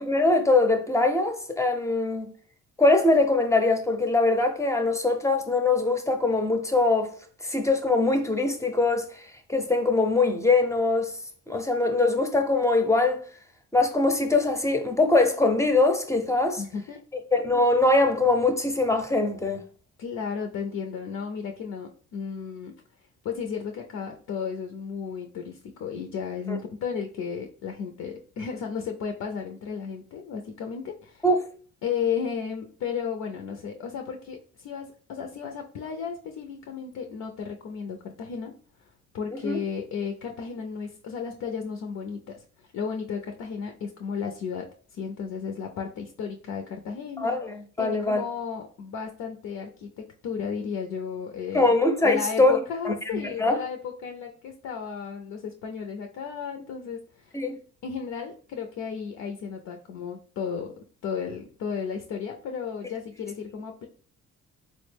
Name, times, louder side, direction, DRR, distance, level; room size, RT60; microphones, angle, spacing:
voice 1, 0.0-2.3 2.8-7.1 7.4-11.2 11.5-13.2 13.7-16.6 17.3-19.6 26.5-26.6 31.2-31.4 39.4-39.6 47.2-48.2 51.5-52.6 52.8-53.6 57.3-57.6, left 2 dB, 10° left, 0.5 m, -22 dB
voice 2, 16.6-17.0 20.0-22.7 23.2-31.2 31.8-38.5 38.8-47.4 47.8-51.7 52.0-57.4 57.8-60.7 61.0-63.9, left 6 dB, 65° left, 0.5 m, -34 dB
3.7 x 2.1 x 3.3 m
cardioid pair, 90°, 30 cm